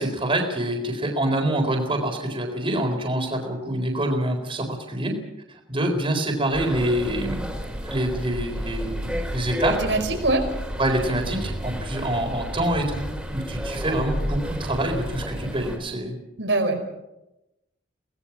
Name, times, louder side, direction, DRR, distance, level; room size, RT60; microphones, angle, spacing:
voice 1, 0.0-5.1 5.5-7.5 7.8-9.8 10.8-13.0 13.3-16.2, right 1 dB, 30° right, 3 dB, 4.1 m, -26 dB
sound 1, 6.5-15.8, equal, 5° right, 4.2 m, -31 dB
voice 2, 9.8-10.4 16.4-16.9, right 2 dB, 85° right, 4 dB, 4.9 m, -23 dB
24.5 x 18.5 x 6.0 m, 0.93 s
head